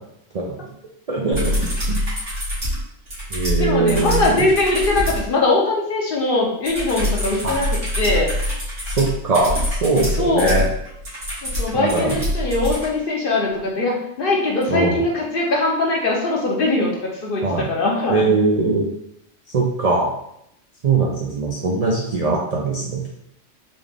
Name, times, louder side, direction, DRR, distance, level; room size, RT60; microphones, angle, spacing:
voice 1, 1.1-2.0 3.3-4.5 7.4-7.5 9.0-10.7 11.7-12.2 14.7-15.0 17.4-17.7 18.1-18.9 19.5-20.1 20.8-23.1, right 3 dB, 50° right, -3 dB, 0.4 m, -21 dB
sound 1, 1.3-5.3 6.6-12.9 14.6-14.7, left 1 dB, 75° right, 1.9 m, -25 dB
voice 2, 3.6-8.3 10.2-10.5 11.4-18.3, left 2 dB, 50° left, -1 dB, 0.9 m, -21 dB
4.1 x 2.4 x 3.3 m, 0.76 s
omnidirectional pair, 1.3 m